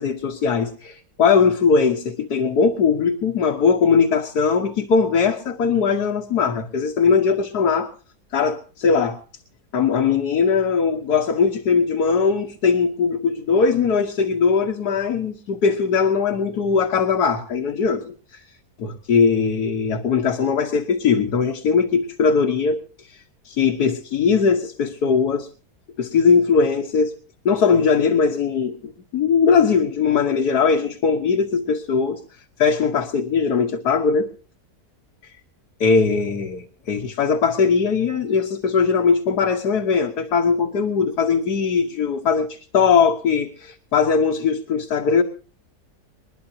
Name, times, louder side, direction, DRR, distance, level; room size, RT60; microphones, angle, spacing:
voice 1, 0.0-7.9 8.3-9.2 9.7-18.0 18.3-18.4 18.8-25.5 26.0-27.1 27.5-32.2 32.6-34.3 35.8-45.2, left 5 dB, 80° left, 3 dB, 1.8 m, -20 dB
21.5 x 21.0 x 2.8 m, 0.37 s
omnidirectional pair, 1.7 m